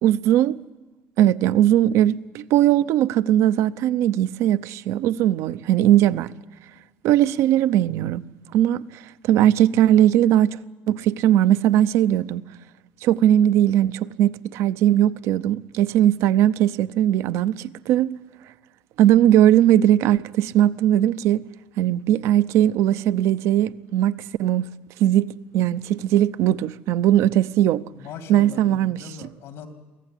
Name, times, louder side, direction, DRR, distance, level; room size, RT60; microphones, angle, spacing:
voice 1, 0.0-0.6 1.2-6.3 7.0-8.2 8.5-9.0 9.3-10.6 10.9-12.4 13.0-18.1 19.0-21.5 21.8-24.7 25.0-25.3 25.5-27.8 28.3-29.0, right 12 dB, 70° right, 0.7 m, -19 dB
voice 2, 27.9-29.7, left 6 dB, 75° left, 2.6 m, -39 dB
23.5 x 15.5 x 10.0 m
cardioid pair, 110°, 5 cm